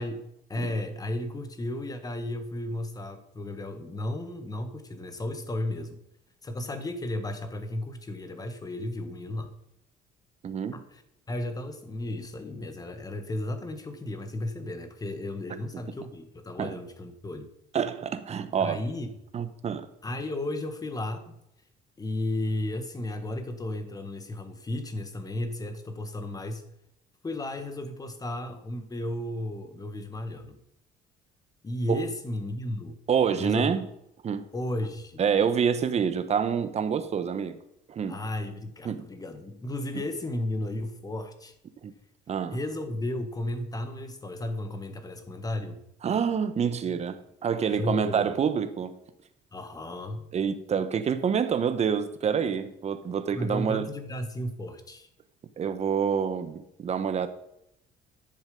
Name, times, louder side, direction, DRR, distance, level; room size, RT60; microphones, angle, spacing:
voice 1, 0.0-6.0 6.4-9.5 10.7-11.0 11.3-17.5 18.6-19.1 20.0-21.3 22.0-26.6 27.2-30.6 31.6-33.0 33.4-33.8 34.5-35.2 38.1-41.5 42.5-45.8 47.7-48.2 49.5-50.3 53.3-55.1, left 1 dB, 20° left, 8 dB, 1.5 m, -34 dB
voice 2, 10.4-10.8 16.6-16.7 17.7-18.8 19.3-19.9 31.9-32.0 33.1-33.9 34.2-34.4 35.2-37.6 37.9-38.2 38.8-39.0 41.8-41.9 42.3-42.6 46.0-48.9 50.3-53.9 55.6-57.3, right 7 dB, 40° right, 10 dB, 1.1 m, -27 dB
10.5 x 7.3 x 5.2 m, 0.81 s
cardioid pair, 110°, 17 cm